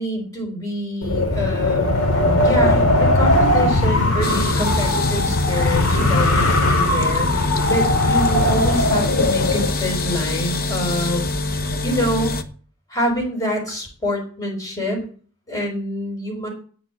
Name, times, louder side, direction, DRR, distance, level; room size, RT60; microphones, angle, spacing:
voice 1, 0.0-2.1 2.4-11.3 11.8-12.3 12.9-15.0 15.5-16.5, equal, 15° left, -1 dB, 5.1 m, -26 dB
Wind, 1.0-9.7, left 1 dB, 75° left, 2.3 m, -19 dB
sound 1, 4.2-12.4, left 2 dB, 45° left, 1.0 m, -25 dB
9.3 x 7.0 x 8.5 m, 0.42 s
head